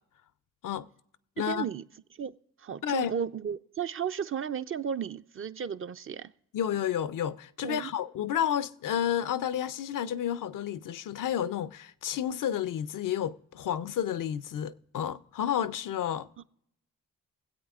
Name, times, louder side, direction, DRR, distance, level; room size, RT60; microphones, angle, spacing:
voice 1, 1.4-1.9 2.1-6.3 7.6-7.9 16.4-16.5, right 7 dB, 40° right, 0.4 m, -34 dB
voice 2, 6.5-16.3, left 10 dB, 65° left, 0.5 m, -31 dB
24.0 x 8.1 x 2.4 m
cardioid pair, 60°, 35 cm